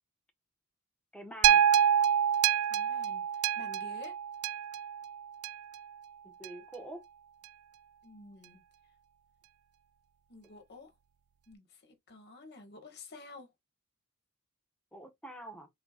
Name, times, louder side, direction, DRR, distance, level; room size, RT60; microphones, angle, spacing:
voice 1, 1.1-1.6 6.2-7.0 14.9-15.7, right 1 dB, 5° left, 1.4 m, -46 dB
sound 1, 1.4-5.8 6.4-6.5, right 9 dB, 70° right, 0.3 m, -27 dB
voice 2, 2.7-3.2 3.5-4.2 8.0-8.6 10.3-10.9 11.5-13.5, left 3 dB, 50° left, 1.7 m, -50 dB
4.5 x 4.2 x 2.5 m
head